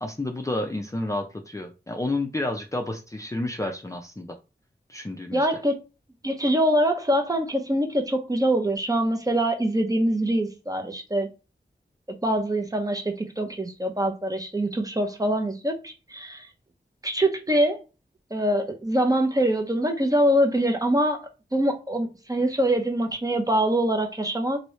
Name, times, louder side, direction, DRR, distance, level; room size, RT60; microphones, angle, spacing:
voice 1, 0.0-4.4 4.9-5.5, left 2 dB, 15° left, 0.5 m, -30 dB
voice 2, 5.3-5.8 6.2-11.3 12.2-16.5 17.0-17.8 18.3-24.6, right 1 dB, 20° right, 0.7 m, -24 dB
3.0 x 2.7 x 3.1 m
wide cardioid pair, 80°, 18 cm